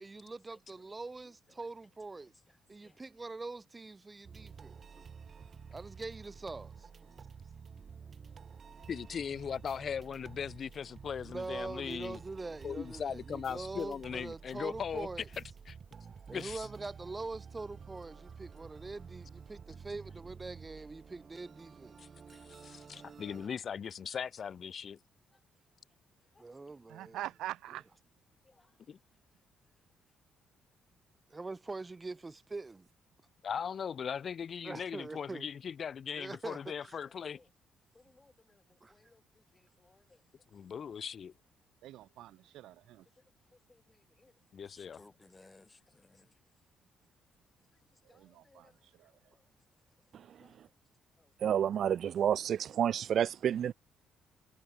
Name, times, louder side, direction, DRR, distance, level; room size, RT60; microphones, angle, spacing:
voice 1, 0.0-2.3 2.7-5.0 5.7-6.9 11.2-15.3 16.3-22.0 22.3-22.4 26.4-27.2 31.3-32.9 34.6-35.5 36.2-37.0 38.8-38.9, right 3 dB, 25° right, 1.6 m, -43 dB
sound 1, 4.2-23.5, right 6 dB, 50° right, 2.4 m, -51 dB
voice 2, 8.9-12.2 12.6-15.1 15.4-15.8 16.3-16.7 22.0-22.1 22.5-25.0 28.9-29.0 33.4-37.4 40.5-41.3 44.5-45.0, left 7 dB, 55° left, 2.4 m, -39 dB
voice 3, 22.6-23.1 26.3-26.4 28.4-28.7 37.9-38.6 38.9-39.2 39.5-40.2 43.7-44.3 44.7-46.3 48.1-48.7 50.4-50.5 51.2-51.3, left 3 dB, 25° left, 1.4 m, -63 dB
voice 4, 26.9-27.9 41.8-43.1 48.0-49.3, right 14 dB, 80° right, 3.2 m, -45 dB
voice 5, 51.4-53.7, right 9 dB, 65° right, 0.3 m, -30 dB
supercardioid pair, 65°, 0 cm